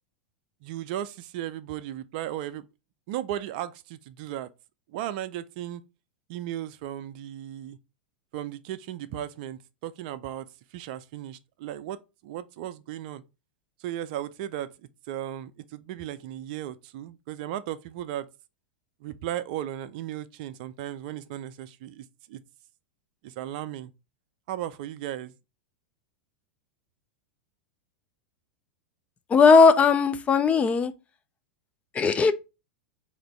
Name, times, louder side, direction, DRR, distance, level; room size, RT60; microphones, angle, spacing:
voice 1, 0.6-2.6 3.1-4.5 4.9-5.8 6.3-7.8 8.3-12.0 12.2-13.2 13.8-14.7 15.1-18.3 19.0-22.4 23.2-23.9 24.5-25.3, right 12 dB, 55° right, 0.4 m, -36 dB
voice 2, 29.3-30.9 31.9-32.3, left 5 dB, 20° left, 0.4 m, -18 dB
2.9 x 2.5 x 4.3 m
figure-of-eight pair, 95°, 6 cm